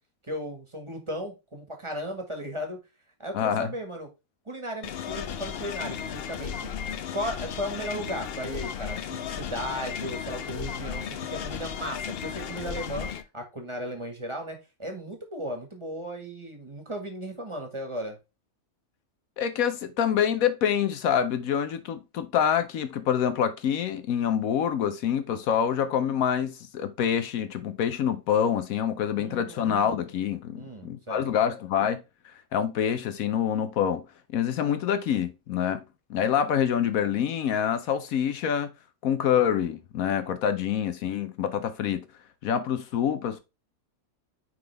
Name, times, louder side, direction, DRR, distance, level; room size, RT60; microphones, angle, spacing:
voice 1, 0.3-2.8 3.2-4.1 4.4-6.7 7.1-13.1 13.3-18.2 29.1-29.7 30.5-31.2, equal, 20° right, 1.6 m, -36 dB
voice 2, 3.3-3.7 19.4-32.0 32.5-34.0 34.3-35.8 36.1-38.7 39.0-42.0 42.4-43.4, left 8 dB, 75° left, 1.1 m, -26 dB
sound 1, 4.8-13.2, left 8 dB, 60° left, 0.6 m, -35 dB
9.3 x 3.8 x 3.3 m
omnidirectional pair, 1.5 m